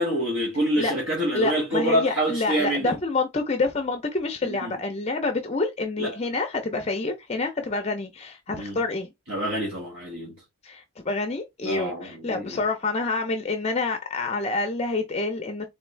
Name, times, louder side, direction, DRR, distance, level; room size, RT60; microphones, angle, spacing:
voice 1, 0.0-2.9 4.4-4.7 6.0-6.1 8.5-8.8 9.3-10.3 11.6-12.6, right 1 dB, 65° right, 1.5 m, -26 dB
voice 2, 1.3-9.1 10.6-15.7, left 3 dB, 30° left, 0.5 m, -27 dB
3.8 x 3.5 x 3.2 m
head